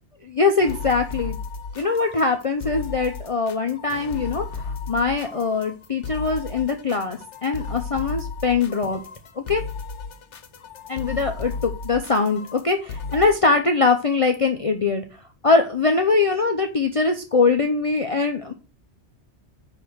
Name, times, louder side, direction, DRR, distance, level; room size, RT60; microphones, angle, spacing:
voice 1, 0.2-1.4 1.8-9.0 9.4-9.6 10.9-15.0 15.4-18.5, left 4 dB, 35° left, 4 dB, 0.7 m, -22 dB
sound 1, 0.6-13.3, left 4 dB, 80° left, 1.2 m, -34 dB
9.6 x 3.5 x 6.3 m, 0.33 s
omnidirectional pair, 1.2 m